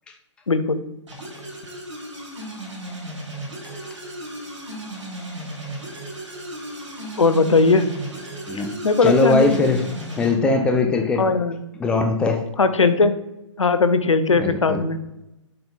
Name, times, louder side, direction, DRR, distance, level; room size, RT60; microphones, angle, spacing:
voice 1, 0.5-0.8 7.2-7.9 8.8-9.7 11.2-11.6 12.6-13.1 13.6-15.0, left 4 dB, 80° left, 12 dB, 0.6 m, -18 dB
sound 1, 1.1-10.3, right 1 dB, 70° right, 1.9 m, -35 dB
voice 2, 3.6-4.0 8.5-9.8 10.2-11.3 11.7-12.5 14.3-14.8, left 3 dB, 5° left, 4 dB, 0.4 m, -21 dB
6.7 x 3.9 x 3.8 m, 0.91 s
figure-of-eight pair, 120°, 16 cm